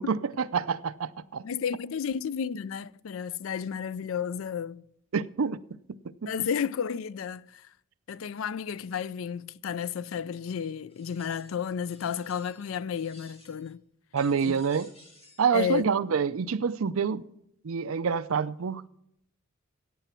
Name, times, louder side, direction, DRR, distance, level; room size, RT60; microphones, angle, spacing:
voice 1, 0.0-1.4 5.1-5.6 6.2-6.3 14.1-14.9 15.4-17.2 17.6-18.9, right 6 dB, 80° right, 0.5 m, -27 dB
voice 2, 1.4-4.8 6.3-7.7 8.1-13.8 14.4-14.6 15.5-15.9, left 7 dB, 70° left, 0.4 m, -32 dB
sound 1, 10.9-11.6 11.9-12.7 12.9-13.7 14.2-15.5, left 1 dB, 30° left, 5.9 m, -54 dB
15.0 x 9.0 x 4.4 m
head